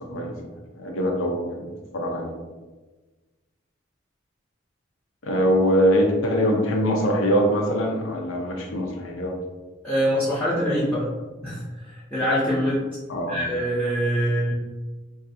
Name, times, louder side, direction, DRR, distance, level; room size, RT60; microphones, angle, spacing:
voice 1, 0.8-1.7 1.9-2.3 5.2-9.3 13.1-13.4, equal, 90° left, 0 dB, 0.6 m, -23 dB
voice 2, 9.8-11.1 11.4-11.6 12.1-12.8 13.3-14.5, equal, 5° left, -10 dB, 0.6 m, -24 dB
3.1 x 2.5 x 2.6 m, 1.2 s
head